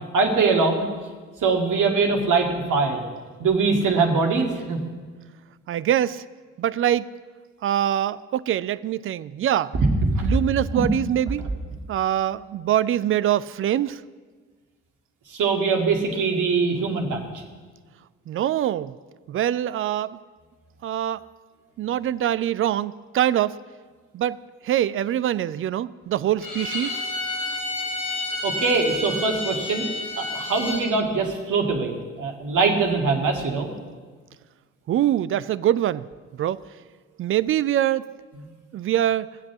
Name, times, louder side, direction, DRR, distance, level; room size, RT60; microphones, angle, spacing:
voice 1, 0.1-0.8 1.4-3.0 3.4-4.8 10.1-10.3 10.7-10.9 11.4-11.5 15.3-17.4 28.4-29.9 30.2-33.7 38.4-38.5, right 4 dB, 50° right, 1 dB, 2.2 m, -22 dB
voice 2, 5.7-6.2 6.6-7.1 7.6-9.7 10.2-11.5 11.9-14.0 18.3-19.0 19.3-20.2 20.8-21.2 21.8-23.6 24.1-24.4 24.6-27.0 34.9-36.1 36.4-36.6 37.2-38.0 38.7-39.3, right 11 dB, 35° right, 16 dB, 0.4 m, -24 dB
Bowed string instrument, 26.4-30.8, left 2 dB, 50° left, 5.0 m, -30 dB
17.5 x 7.4 x 7.2 m, 1.4 s
figure-of-eight pair, 40°, 40 cm